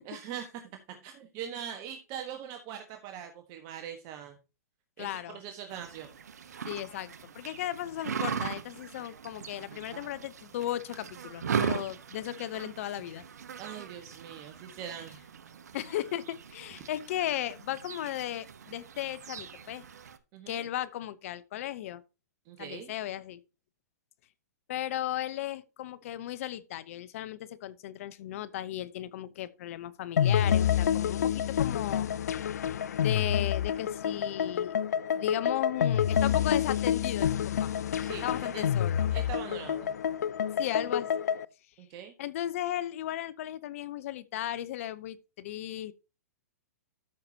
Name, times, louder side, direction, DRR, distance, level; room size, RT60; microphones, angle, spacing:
voice 1, 0.0-0.6 0.9-4.4 5.0-6.1 13.6-15.2 20.3-20.6 22.5-22.9 38.0-38.7 39.1-39.9 41.8-42.1, right 9 dB, 40° right, 1.5 m, -42 dB
voice 2, 5.0-5.4 6.7-13.2 15.7-19.8 20.5-22.0 22.6-23.4 24.7-32.1 33.0-34.7 35.2-37.9 38.2-39.1 40.6-41.1 42.2-45.9, left 12 dB, 55° left, 0.9 m, -36 dB
sound 1, 5.7-20.2, right 7 dB, 75° right, 1.1 m, -39 dB
sound 2, 30.2-41.5, left 9 dB, 75° left, 0.5 m, -28 dB
13.0 x 5.9 x 2.9 m
hypercardioid pair, 120°, 9 cm